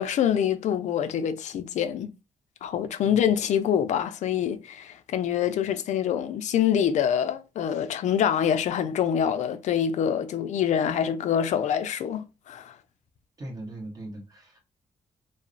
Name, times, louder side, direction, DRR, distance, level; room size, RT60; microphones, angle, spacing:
voice 1, 0.0-2.1 2.6-12.8, left 9 dB, 65° left, 0.4 m, -25 dB
voice 2, 13.4-14.6, right 1 dB, 30° right, 1.1 m, -39 dB
2.8 x 2.0 x 2.5 m
cardioid pair, 120°, 13 cm